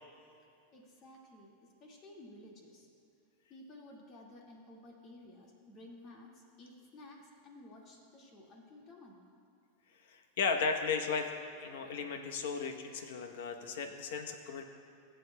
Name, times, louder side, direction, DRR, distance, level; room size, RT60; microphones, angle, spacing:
voice 1, 0.7-2.9 3.5-9.2, left 1 dB, 40° left, -1 dB, 1.9 m, -54 dB
voice 2, 10.1-11.3 11.6-14.6, left 5 dB, 75° left, 5 dB, 0.9 m, -35 dB
19.0 x 7.9 x 2.2 m, 2.6 s
hypercardioid pair, 120°, 0 cm